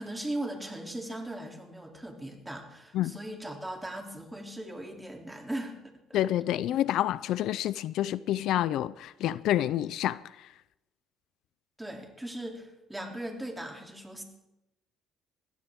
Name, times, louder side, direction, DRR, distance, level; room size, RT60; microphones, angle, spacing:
voice 1, 0.0-6.2 11.8-14.2, right 1 dB, 10° right, 3.0 m, -38 dB
voice 2, 6.1-10.5, left 13 dB, 75° left, 0.4 m, -28 dB
21.5 x 15.5 x 3.7 m
cardioid pair, 110°, 0 cm